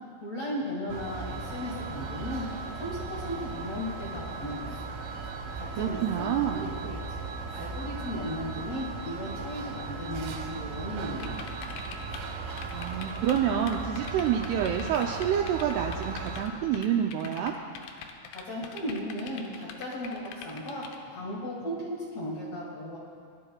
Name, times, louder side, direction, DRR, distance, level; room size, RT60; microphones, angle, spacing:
voice 1, 0.2-2.5 2.7-4.7 5.5-7.0 7.5-11.4 18.3-23.0, equal, 50° left, -6 dB, 2.2 m, -36 dB
sound 1, 0.9-16.5, right 4 dB, 75° right, 2.4 m, -37 dB
voice 2, 5.7-6.7 12.7-17.5, right 9 dB, 90° right, 1 dB, 2.3 m, -28 dB
sound 2, 11.2-12.3 12.5-13.4 13.7-16.5 16.7-21.0, left 7 dB, 80° left, 3.1 m, -43 dB
21.5 x 11.5 x 2.3 m, 2.2 s
omnidirectional pair, 5.3 m